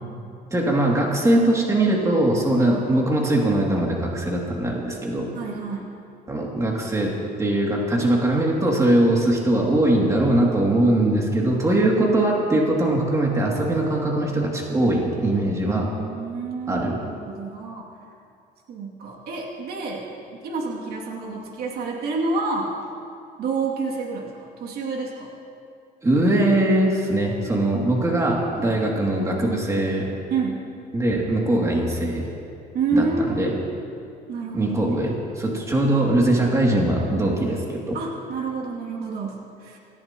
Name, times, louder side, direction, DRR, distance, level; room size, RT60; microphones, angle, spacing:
voice 1, 0.5-5.3 6.3-7.1 7.4-15.9 16.7-17.0 26.0-30.1 30.9-32.3 32.9-33.5 34.5-38.0, right 1 dB, 20° right, -2 dB, 2.7 m, -21 dB
voice 2, 2.6-2.9 5.3-5.9 15.7-17.8 18.7-20.1 20.4-22.7 23.4-25.3 30.3-30.7 32.7-33.6 34.3-35.2 37.9-39.8, right 4 dB, 70° right, -2 dB, 2.6 m, -28 dB
27.0 x 15.5 x 3.0 m, 2.5 s
cardioid pair, 110°, 17 cm